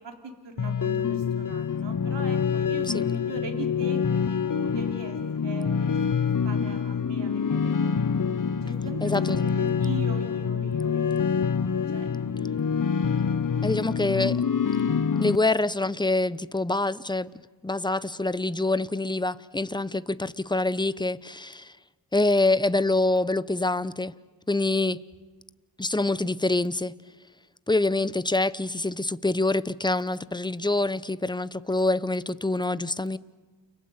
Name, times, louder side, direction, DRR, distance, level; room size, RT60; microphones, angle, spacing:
voice 1, 0.0-6.1 6.4-8.0 8.6-11.3 11.9-12.6 14.1-14.3, right 3 dB, 75° right, 3.3 m, -40 dB
sound 1, 0.6-15.4, left 6 dB, 45° left, 1.0 m, -26 dB
voice 2, 9.0-9.5 13.6-14.4 15.2-17.3 17.6-21.7 22.1-24.1 24.5-25.0 25.8-26.9 27.7-33.2, left 2 dB, 10° left, 0.9 m, -25 dB
30.0 x 24.0 x 8.2 m
cardioid pair, 50°, 43 cm